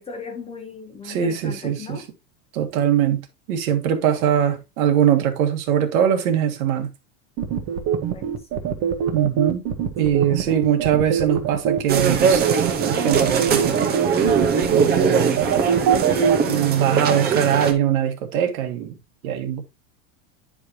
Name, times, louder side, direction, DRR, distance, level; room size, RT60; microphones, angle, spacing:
voice 1, 0.0-2.1 8.1-8.7 10.0-10.6 14.2-14.3, left 4 dB, 15° left, 0.9 m, -39 dB
voice 2, 1.0-2.0 2.5-6.9 9.1-9.6 10.0-12.6 12.8-13.9 14.7-15.4 16.5-19.0 19.2-19.6, right 9 dB, 70° right, 1.7 m, -22 dB
sound 1, 7.4-16.4, right 9 dB, 35° right, 1.1 m, -22 dB
sound 2, 11.9-17.7, right 6 dB, 20° right, 0.8 m, -21 dB
9.6 x 4.9 x 2.8 m
supercardioid pair, 160°, 43 cm